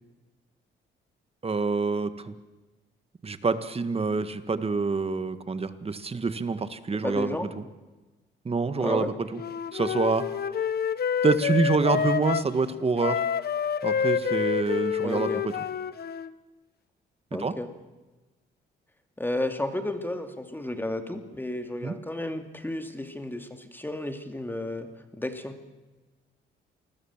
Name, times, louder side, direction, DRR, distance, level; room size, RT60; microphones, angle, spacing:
voice 1, 1.4-2.3 3.2-7.6 8.5-9.4 9.7-10.3 11.2-13.2 13.8-15.3 17.4-17.5 21.8-22.0, right 4 dB, 30° right, 11 dB, 1.8 m, -26 dB
voice 2, 7.0-7.5 8.8-9.1 15.0-15.4 17.3-17.7 19.2-25.6, left 1 dB, 10° left, 7 dB, 2.6 m, -32 dB
Wind instrument woodwind instrument, 9.3-12.5 13.0-16.3, left 8 dB, 50° left, 1.2 m, -28 dB
28.0 x 21.0 x 7.4 m, 1.2 s
cardioid pair, 90°, 20 cm